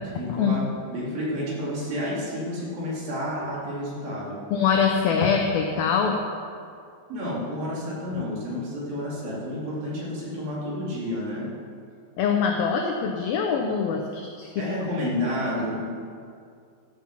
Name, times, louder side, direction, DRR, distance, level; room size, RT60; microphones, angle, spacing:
voice 1, 0.2-4.4 7.1-11.5 14.6-15.8, left 1 dB, 55° right, -6 dB, 4.1 m, -30 dB
voice 2, 4.5-6.2 12.2-14.6, left 6 dB, 80° left, 2 dB, 2.1 m, -23 dB
13.0 x 7.4 x 5.8 m, 2.3 s
omnidirectional pair, 5.1 m